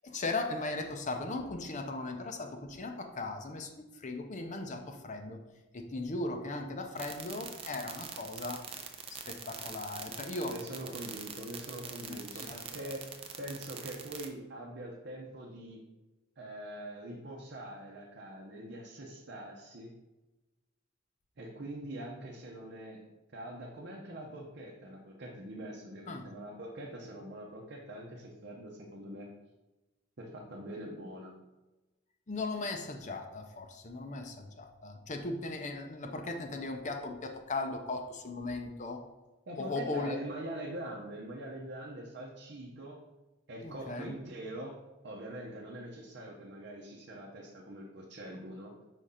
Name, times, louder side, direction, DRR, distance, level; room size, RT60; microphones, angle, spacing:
voice 1, 0.0-3.7 4.0-5.4 5.7-8.6 9.3-10.5 12.1-12.6 26.1-26.2 32.3-39.0 39.6-40.2 43.6-44.1, left 2 dB, 40° left, 4 dB, 0.6 m, -37 dB
sound 1, 7.0-14.3, right 7 dB, 30° right, 0.5 m, -43 dB
voice 2, 10.5-13.1 13.4-15.8 16.4-20.0 21.4-23.0 23.3-29.3 30.2-31.3 39.5-43.0 43.5-44.8 45.0-48.7, right 1 dB, 60° right, -2 dB, 0.8 m, -43 dB
5.0 x 3.7 x 5.6 m, 1.1 s
head